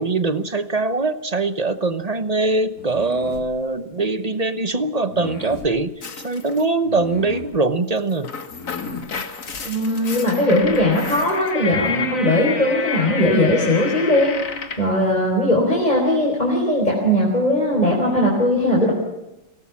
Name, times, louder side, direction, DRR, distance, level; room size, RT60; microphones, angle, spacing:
voice 1, 0.0-5.9 6.2-8.3, right 3 dB, 30° right, 12 dB, 0.9 m, -22 dB
sound 1, 2.8-3.5 5.1-5.7 6.8-7.6 8.5-9.1, left 4 dB, 90° left, 3.4 m, -35 dB
sound 2, 6.0-6.6 8.0-14.9, left 5 dB, 65° left, 2.0 m, -30 dB
voice 2, 9.6-14.3 14.8-18.9, left 1 dB, 30° left, -2 dB, 4.9 m, -19 dB
24.0 x 18.0 x 7.4 m, 0.92 s
omnidirectional pair, 1.5 m